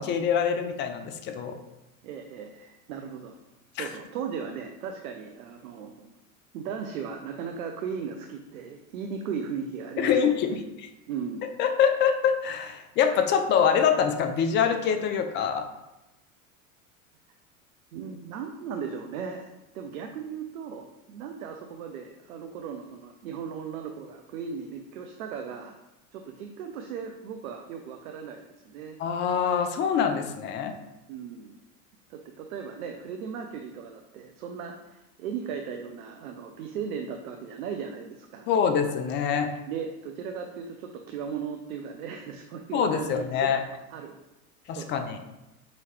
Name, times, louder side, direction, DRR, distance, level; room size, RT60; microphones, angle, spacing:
voice 1, 0.0-1.6 3.8-3.9 10.0-10.9 11.6-15.7 29.0-30.7 38.5-39.5 42.7-43.6 44.7-45.2, left 7 dB, 30° left, 6 dB, 0.3 m, -25 dB
voice 2, 2.0-3.4 3.7-6.1 6.5-10.6 11.1-11.5 17.9-25.8 26.1-29.0 31.1-31.5 32.1-38.5 39.7-43.6 43.9-44.2 44.7-45.0, right 6 dB, 75° right, 4 dB, 0.6 m, -37 dB
5.0 x 2.7 x 3.1 m, 0.96 s
hypercardioid pair, 90°, 43 cm